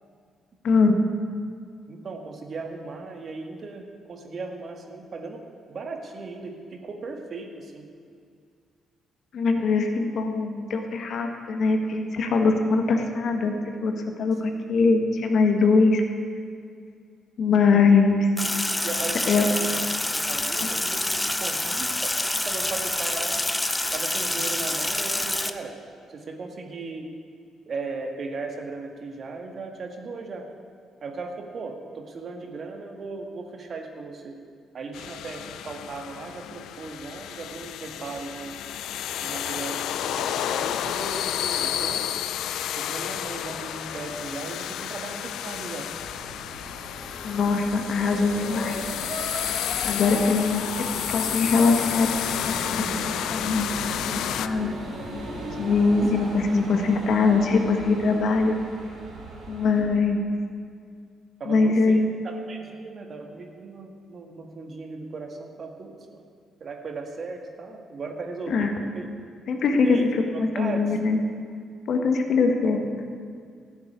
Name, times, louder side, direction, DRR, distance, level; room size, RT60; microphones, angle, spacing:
voice 1, 0.6-1.0 9.3-13.5 13.8-16.0 17.4-18.3 19.3-19.4 47.2-48.8 49.8-52.1 52.4-52.8 53.3-53.9 54.4-54.7 55.5-58.5 59.5-60.2 61.5-62.2 68.5-68.7 69.5-70.0 70.4-71.2 71.9-72.8, left 4 dB, 60° left, 4 dB, 1.6 m, -22 dB
voice 2, 1.9-7.9 17.5-18.0 18.7-22.2 22.4-23.4 23.9-25.8 26.1-27.1 27.7-30.5 31.0-34.4 34.7-38.6 39.2-42.1 42.7-45.9 61.4-66.3 66.6-69.1 69.8-70.8, right 3 dB, 50° right, 4 dB, 1.8 m, -37 dB
Sink (filling or washing), 18.4-25.5, left 1 dB, 10° left, 0.7 m, -27 dB
sound 1, 34.9-54.5, left 10 dB, 80° left, 0.5 m, -31 dB
sound 2, 45.9-59.8, right 1 dB, 80° right, 4.2 m, -38 dB
13.5 x 7.1 x 9.5 m, 2.2 s
cardioid pair, 90°, 0 cm